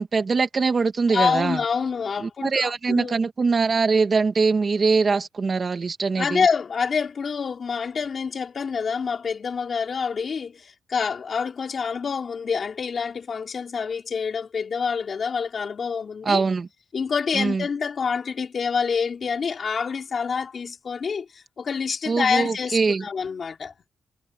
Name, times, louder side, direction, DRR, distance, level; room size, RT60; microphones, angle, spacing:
voice 1, 0.0-1.6 2.2-6.4 16.2-16.7 17.3-17.6 22.1-23.0, right 4 dB, 40° right, 2.4 m, -22 dB
voice 2, 1.1-3.2 6.2-16.4 16.9-23.7, left 6 dB, 55° left, 4.1 m, -27 dB
cardioid pair, 95°, 0 cm